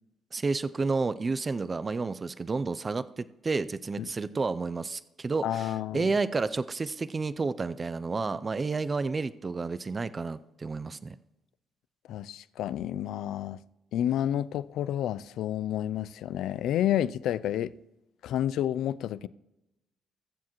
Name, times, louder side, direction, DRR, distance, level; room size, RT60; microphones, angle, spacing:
voice 1, 0.3-11.2, right 4 dB, 30° right, 0.4 m, -31 dB
voice 2, 5.4-6.1 12.1-13.6 13.9-17.7 18.2-19.3, left 11 dB, 80° left, 0.3 m, -30 dB
20.5 x 7.3 x 3.0 m
cardioid pair, 90°, 0 cm